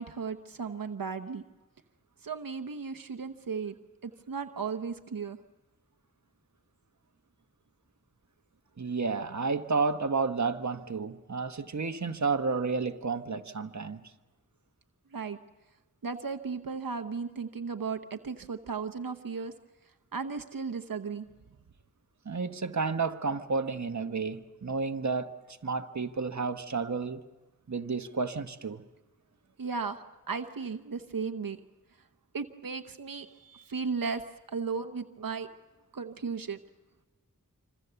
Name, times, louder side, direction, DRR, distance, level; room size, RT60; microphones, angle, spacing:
voice 1, 0.0-1.4 2.2-3.7 4.0-5.4 15.1-15.4 16.0-19.5 20.1-21.2 29.6-31.6 32.3-34.2 34.5-35.5 35.9-36.6, right 5 dB, 85° right, 0.9 m, -35 dB
voice 2, 8.8-14.0 22.2-25.3 25.6-27.2 27.7-28.8, right 4 dB, 55° right, 1.2 m, -31 dB
26.5 x 26.0 x 6.9 m
wide cardioid pair, 50°, 33 cm